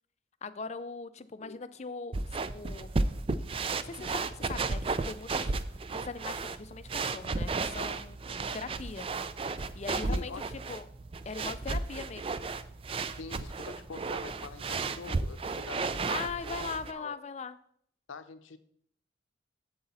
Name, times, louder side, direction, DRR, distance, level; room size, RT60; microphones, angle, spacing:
voice 1, 0.4-2.9 3.8-4.8 5.1-5.5 5.9-9.1 9.7-10.3 10.7-10.8 11.3-12.4 16.1-17.6, left 4 dB, 35° left, 0.4 m, -40 dB
sound 1, 2.1-16.9, right 3 dB, 30° right, 0.3 m, -34 dB
voice 2, 10.1-10.4 13.2-16.5 16.9-17.2 18.1-18.6, left 4 dB, 85° left, 0.7 m, -45 dB
7.8 x 7.8 x 4.2 m
head